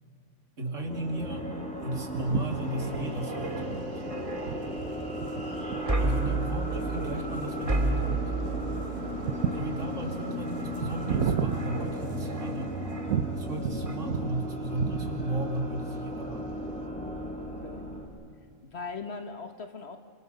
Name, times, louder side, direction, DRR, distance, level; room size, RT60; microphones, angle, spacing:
voice 1, 0.6-3.9 6.0-8.3 9.5-12.7 13.3-16.5, right 1 dB, 65° right, 3 dB, 3.1 m, -35 dB
sound 1, 0.8-18.0, equal, 5° left, 3.8 m, -36 dB
sound 2, 1.2-13.5 13.9-14.1, right 3 dB, 25° right, 2.5 m, -35 dB
sound 3, 2.1-12.5 13.1-14.4 14.7-15.5, right 8 dB, 85° right, 1.3 m, -34 dB
voice 2, 17.3-17.8 18.6-20.0, left 4 dB, 50° left, 7 dB, 1.5 m, -40 dB
29.5 x 25.5 x 6.8 m, 2.2 s
omnidirectional pair, 1.4 m